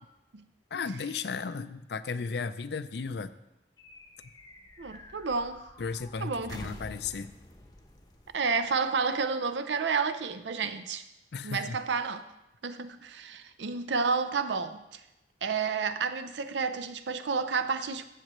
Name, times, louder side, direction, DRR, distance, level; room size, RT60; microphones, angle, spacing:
voice 1, 0.7-3.3 5.8-7.3 11.3-11.8, left 5 dB, 65° left, 0.5 m, -35 dB
sound 1, 3.8-9.5, left 1 dB, 20° left, 0.8 m, -50 dB
voice 2, 4.8-5.6 6.2-6.8 8.3-11.0 11.4-12.2 12.6-15.0 15.4-18.0, right 5 dB, 75° right, 0.6 m, -30 dB
15.0 x 7.6 x 3.1 m
head